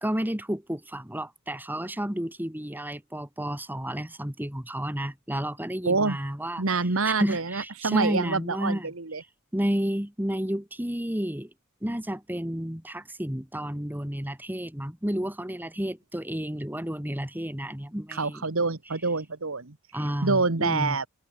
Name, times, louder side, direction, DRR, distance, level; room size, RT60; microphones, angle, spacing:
voice 1, 0.0-6.8 7.1-8.9 9.5-11.5 11.8-18.5 19.9-21.0, equal, 10° right, 1.9 m, -31 dB
voice 2, 5.8-6.2 6.6-9.2 18.1-19.7 20.2-21.0, right 3 dB, 65° right, 1.5 m, -26 dB
head